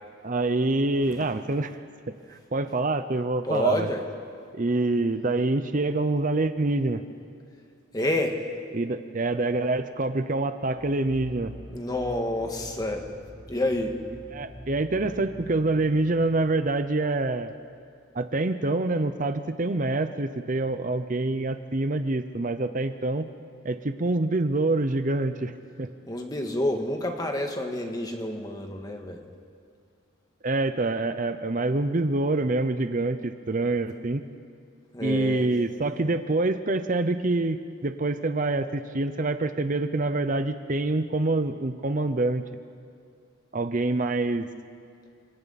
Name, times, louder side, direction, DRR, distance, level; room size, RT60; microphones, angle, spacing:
voice 1, 0.2-1.7 2.3-3.9 4.5-7.0 8.7-11.5 14.3-17.5 18.1-23.3 23.6-25.5 25.8-25.9 30.4-34.2 35.0-42.4 43.5-44.5, right 2 dB, 40° right, 9 dB, 0.7 m, -26 dB
voice 2, 3.4-4.0 7.9-8.4 11.7-13.0 13.5-13.9 26.1-29.2 34.9-35.5, left 1 dB, 20° left, 3 dB, 1.7 m, -28 dB
sound 1, 10.7-18.0, equal, 20° right, 2.9 m, -45 dB
30.0 x 27.0 x 4.2 m, 2.3 s
head